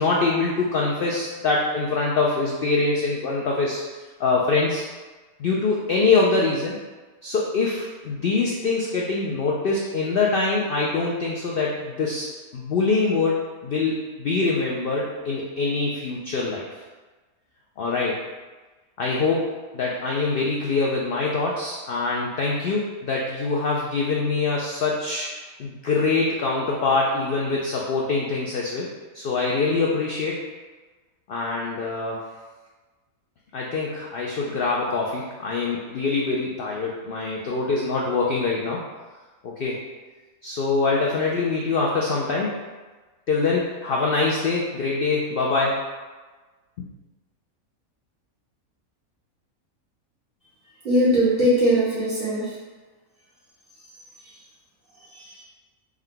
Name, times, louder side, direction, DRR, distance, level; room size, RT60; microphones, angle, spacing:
voice 1, 0.0-3.8 4.2-4.9 5.4-6.8 7.2-12.3 12.5-16.8 17.8-18.2 19.0-25.3 25.6-28.9 29.1-30.4 31.3-32.2 33.5-38.8 39.4-39.8 40.4-42.5 43.3-45.9, left 3 dB, 75° left, -3 dB, 0.5 m, -24 dB
voice 2, 50.8-52.6 54.2-54.4 55.0-55.4, equal, 35° right, -13 dB, 1.3 m, -21 dB
4.7 x 2.2 x 3.7 m, 1.3 s
omnidirectional pair, 1.5 m